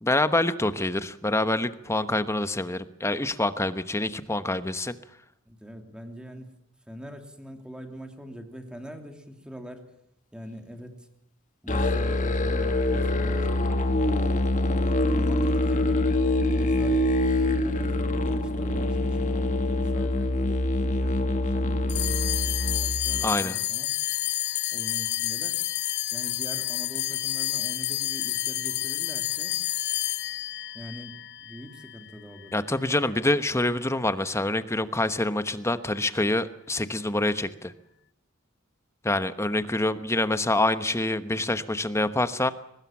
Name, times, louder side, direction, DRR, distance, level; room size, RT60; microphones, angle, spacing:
voice 1, 0.0-5.0 23.2-23.6 32.5-37.7 39.0-42.5, left 2 dB, 15° left, 12 dB, 1.1 m, -26 dB
voice 2, 5.5-6.5 6.9-9.9 10.3-11.1 11.6-14.8 15.1-16.1 16.6-23.9 24.7-25.6 26.1-29.6 30.7-32.7, equal, 5° right, 5 dB, 3.1 m, -43 dB
Musical instrument, 11.7-23.3, left 1 dB, 35° left, 1.9 m, -25 dB
sound 1, 21.9-32.5, left 15 dB, 55° left, 0.9 m, -30 dB
22.5 x 20.0 x 7.3 m, 0.78 s
head